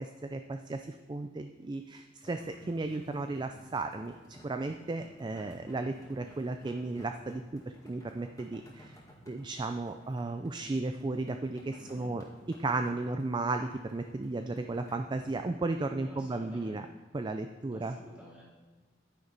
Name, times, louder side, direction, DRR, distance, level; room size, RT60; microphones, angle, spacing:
voice 1, 0.0-8.9 9.3-12.2 12.6-16.9 17.1-18.0, right 2 dB, 25° right, 7 dB, 0.4 m, -35 dB
sound 1, 2.2-15.5, equal, 20° left, 2.0 m, -56 dB
voice 2, 11.8-12.1 16.0-16.8 17.7-18.6, equal, 5° right, -7 dB, 3.1 m, -52 dB
9.8 x 9.5 x 4.0 m, 1.3 s
head